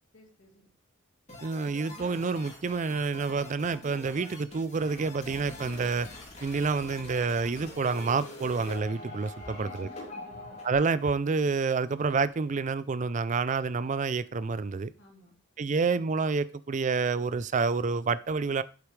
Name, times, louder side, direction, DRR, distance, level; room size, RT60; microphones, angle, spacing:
voice 1, 0.1-0.7 9.4-10.6 15.0-15.4, equal, 60° left, 2.8 m, -57 dB
sound 1, 1.3-10.7, left 2 dB, 35° left, 2.8 m, -44 dB
voice 2, 1.4-6.1 6.4-9.9 10.6-14.9 15.6-18.6, right 4 dB, 35° right, 0.4 m, -28 dB
8.4 x 8.2 x 3.2 m
head